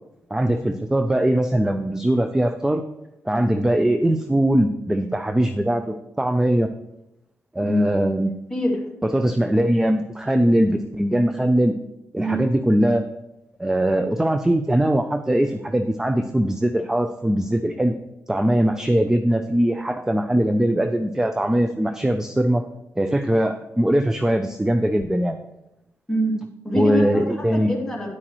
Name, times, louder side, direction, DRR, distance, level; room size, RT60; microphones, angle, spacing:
voice 1, 0.3-2.8 3.2-6.7 7.5-8.3 9.0-11.7 12.1-13.0 13.6-17.9 18.3-22.6 23.0-25.4 26.7-27.7, right 1 dB, 10° right, 8 dB, 0.5 m, -21 dB
voice 2, 8.5-8.8 12.2-12.4 26.1-26.4 26.6-28.1, equal, 10° left, -3 dB, 2.6 m, -24 dB
9.8 x 8.7 x 3.1 m, 0.91 s
cardioid pair, 90°, 6 cm